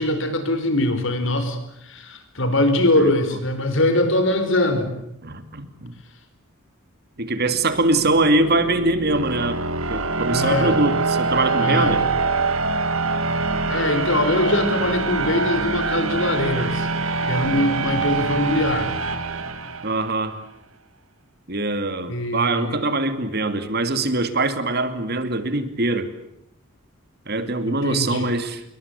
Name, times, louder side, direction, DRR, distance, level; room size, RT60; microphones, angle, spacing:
voice 1, 0.0-1.6 1.8-4.9 10.3-10.8 11.6-11.9 13.7-16.9 17.2-18.9 22.1-22.7 27.7-28.3, left 1 dB, 60° left, 9 dB, 5.1 m, -22 dB
voice 2, 5.2-5.9 7.2-9.6 9.9-12.1 19.8-20.4 21.5-26.1 27.3-28.6, right 2 dB, 50° right, 10 dB, 2.7 m, -23 dB
sound 1, 7.3-20.2, right 3 dB, 70° right, 2.4 m, -25 dB
27.5 x 23.0 x 8.5 m, 0.78 s
head